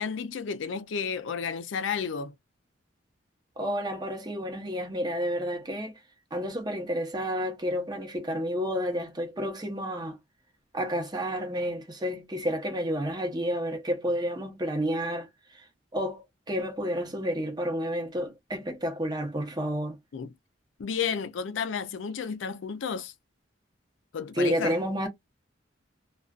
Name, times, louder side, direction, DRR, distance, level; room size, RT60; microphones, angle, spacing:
voice 1, 0.0-2.3 20.1-20.3 20.8-23.1 24.1-24.8, left 6 dB, 75° left, 0.4 m, -32 dB
voice 2, 3.6-5.9 6.3-10.2 10.7-15.6 15.9-20.0 24.3-25.1, equal, 20° right, 0.8 m, -30 dB
2.4 x 2.3 x 2.3 m
head